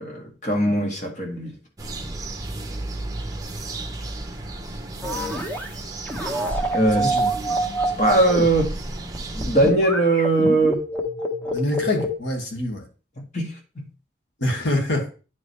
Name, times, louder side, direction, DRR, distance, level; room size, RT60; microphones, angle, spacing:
voice 1, 0.0-1.5 6.7-7.2 8.0-8.7 9.3-10.8 13.3-13.5, right 2 dB, 45° left, 1.9 m, -20 dB
sound 1, 1.8-9.7, right 2 dB, 20° right, 1.0 m, -33 dB
sound 2, 5.0-5.7 6.1-12.1, right 1 dB, 10° left, 1.1 m, -27 dB
voice 2, 7.0-7.3 11.5-12.9 14.4-15.1, left 1 dB, 85° left, 1.9 m, -25 dB
9.6 x 4.9 x 3.3 m
head